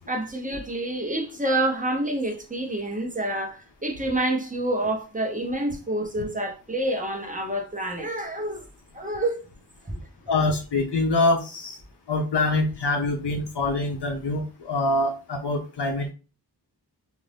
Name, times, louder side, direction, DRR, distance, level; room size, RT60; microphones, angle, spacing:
voice 1, 0.1-8.6 8.9-9.4 9.8-10.0, right 1 dB, 20° right, 0.9 m, -28 dB
voice 2, 10.3-11.8 12.1-16.1, left 2 dB, 85° left, 0.7 m, -25 dB
2.6 x 2.6 x 3.3 m
wide cardioid pair, 50°, 40 cm